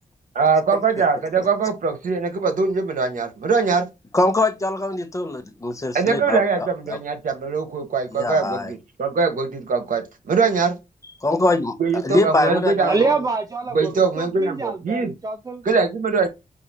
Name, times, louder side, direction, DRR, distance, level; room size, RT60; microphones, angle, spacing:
voice 1, 0.4-3.9 5.9-10.8 11.8-13.1 13.7-15.1 15.6-16.3, right 4 dB, 65° right, 1.0 m, -22 dB
voice 2, 4.1-7.0 8.1-8.7 11.2-11.7 12.0-13.0, left 2 dB, 20° left, 0.8 m, -22 dB
voice 3, 12.9-15.7, right 3 dB, 25° right, 0.5 m, -26 dB
4.8 x 2.6 x 4.1 m
wide cardioid pair, 120°, 15 cm